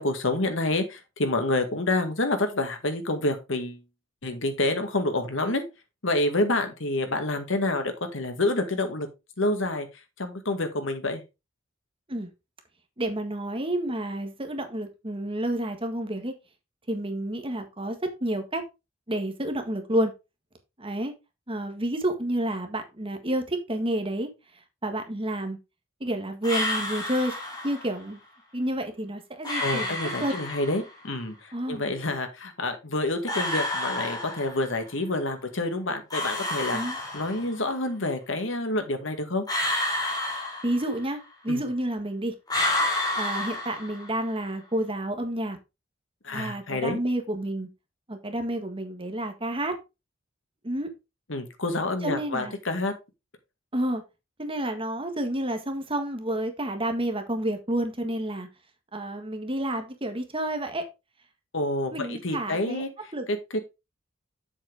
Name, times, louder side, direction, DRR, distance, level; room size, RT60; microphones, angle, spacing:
voice 1, 0.0-3.8 4.2-5.6 6.0-9.1 9.4-9.9 10.2-11.2 29.6-39.4 41.5-41.6 46.2-47.0 51.3-52.9 61.5-62.9 63.3-63.6, left 2 dB, 70° left, 2.0 m, -28 dB
voice 2, 13.0-16.3 16.9-18.6 19.1-20.1 20.8-21.1 21.5-24.3 24.8-25.6 26.0-27.4 27.6-28.2 28.5-30.0 30.2-30.3 31.5-31.8 36.7-37.0 40.6-41.2 41.4-42.3 43.1-45.6 46.3-47.7 48.1-49.8 50.6-50.9 52.0-52.5 53.7-54.0 54.4-58.5 58.9-60.8 61.9-62.8 63.1-63.3, right 1 dB, 25° right, 1.6 m, -29 dB
sound 1, 26.4-27.9 29.4-30.9 33.3-34.8 36.1-37.7 39.5-41.2 42.5-44.3, left 1 dB, 20° left, 3.4 m, -30 dB
7.8 x 7.3 x 3.5 m
head